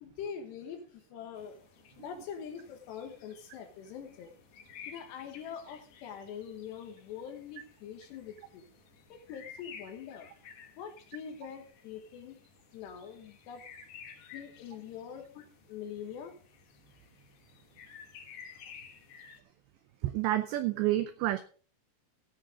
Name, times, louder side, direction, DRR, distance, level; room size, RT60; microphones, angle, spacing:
voice 1, 0.0-1.6 2.0-4.3 4.9-8.7 9.1-10.3 10.8-12.4 12.7-13.7 14.3-16.4, left 8 dB, 70° left, 6 dB, 3.0 m, -44 dB
sound 1, 1.3-19.4, left 7 dB, 90° left, 1.6 m, -54 dB
voice 2, 20.0-21.4, right 15 dB, 90° right, 11 dB, 2.5 m, -29 dB
17.0 x 6.5 x 4.8 m, 0.39 s
omnidirectional pair, 5.9 m